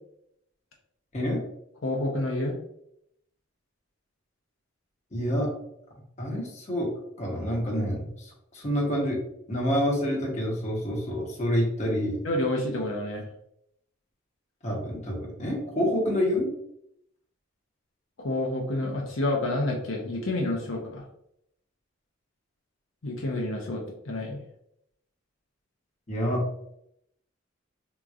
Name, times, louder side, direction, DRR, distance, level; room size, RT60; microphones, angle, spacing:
voice 1, 1.8-2.5 12.2-13.3 18.2-21.1 23.0-24.4, left 1 dB, 75° left, -1 dB, 0.7 m, -29 dB
voice 2, 5.1-5.5 6.2-6.9 7.2-9.2 9.5-12.2 14.6-16.5 26.1-26.4, equal, 35° left, -2 dB, 1.0 m, -27 dB
3.7 x 3.0 x 2.4 m, 0.75 s
head